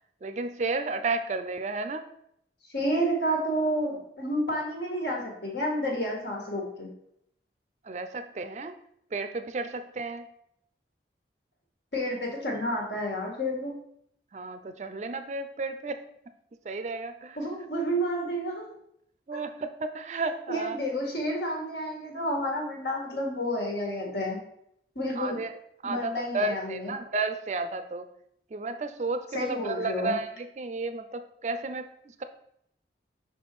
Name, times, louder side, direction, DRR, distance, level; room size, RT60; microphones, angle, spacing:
voice 1, 0.2-2.1 7.8-8.7 9.1-10.3 14.3-16.0 16.6-17.4 19.3-20.8 25.2-25.5 25.8-28.1 28.5-32.2, right 3 dB, 40° right, 9 dB, 0.4 m, -32 dB
voice 2, 2.7-6.9 11.9-13.7 17.4-18.7 20.5-24.4 25.0-25.4 25.8-26.9 29.3-30.2, equal, 75° left, -1 dB, 1.8 m, -30 dB
5.5 x 4.3 x 4.6 m, 0.71 s
head